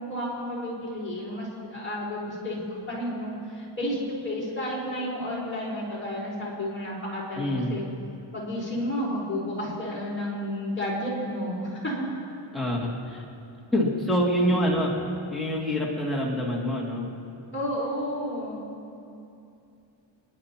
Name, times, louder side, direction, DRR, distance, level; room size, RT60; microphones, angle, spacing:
voice 1, 0.0-7.8 8.3-12.1 17.5-18.7, equal, 25° left, -7 dB, 4.2 m, -31 dB
voice 2, 7.4-7.8 12.5-13.2 13.7-14.9 15.3-17.1, equal, ahead, -6 dB, 2.3 m, -26 dB
29.5 x 10.5 x 2.9 m, 2.6 s
wide cardioid pair, 145°, 50 cm